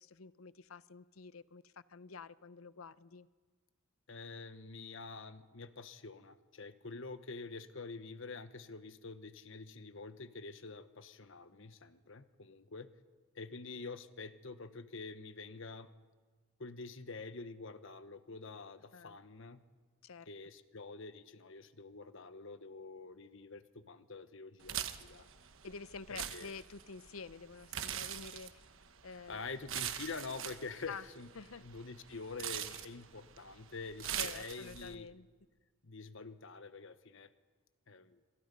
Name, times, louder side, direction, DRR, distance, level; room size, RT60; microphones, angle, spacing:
voice 1, 0.0-3.3 18.9-19.2 20.0-20.3 25.6-28.6 29.0-29.5 30.9-31.1 31.4-31.6 32.7-32.8 34.1-35.3, left 5 dB, 80° left, 16 dB, 0.7 m, -49 dB
voice 2, 4.1-12.9 13.3-15.9 16.6-19.6 20.3-25.3 26.3-26.5 29.1-31.3 31.6-35.1 35.8-37.3 37.9-38.2, left 4 dB, 65° left, 11 dB, 1.2 m, -47 dB
sound 1, 24.6-35.0, right 10 dB, 65° right, 1.2 m, -43 dB
27.0 x 26.0 x 5.5 m, 1.4 s
head